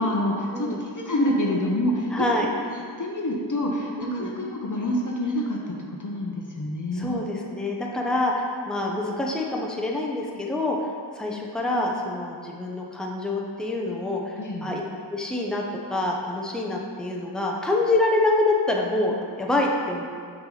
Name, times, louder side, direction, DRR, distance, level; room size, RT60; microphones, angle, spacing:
voice 1, 0.0-2.3 3.0-7.3 14.4-14.7, left 1 dB, 40° left, -1 dB, 0.9 m, -27 dB
voice 2, 2.1-2.5 4.0-4.3 6.9-10.9 11.1-14.8 15.1-15.6 15.9-20.0, left 2 dB, ahead, -2 dB, 0.8 m, -26 dB
5.9 x 5.0 x 3.9 m, 2.2 s
cardioid pair, 40°, 47 cm